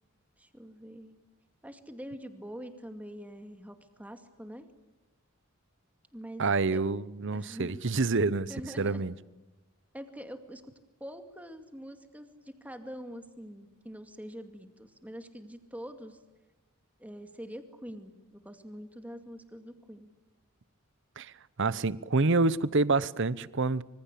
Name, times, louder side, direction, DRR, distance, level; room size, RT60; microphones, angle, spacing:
voice 1, 0.4-1.2 1.6-4.7 6.1-6.8 7.3-7.8 8.5-9.0 9.9-10.6 11.0-16.2 17.0-20.1, equal, 5° right, 2.3 m, -44 dB
voice 2, 6.4-8.5 8.8-9.1 21.2-21.3 21.6-23.8, right 3 dB, 60° right, 0.9 m, -27 dB
26.0 x 25.0 x 8.4 m
head